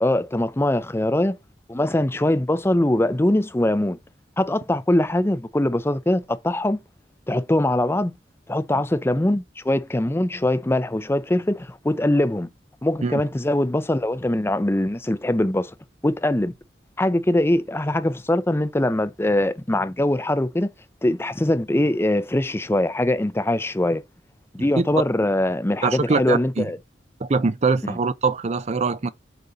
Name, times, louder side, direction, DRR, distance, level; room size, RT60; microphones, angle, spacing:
voice 1, 0.0-1.4 1.7-4.0 4.4-6.8 7.3-8.1 8.5-12.5 12.8-15.7 16.0-16.5 17.0-20.7 21.0-24.0 24.5-26.8 27.8-28.0, left 1 dB, 15° left, 0.5 m, -22 dB
voice 2, 25.8-26.7 27.2-29.1, right 4 dB, 40° right, 0.5 m, -23 dB
6.7 x 4.1 x 5.1 m
head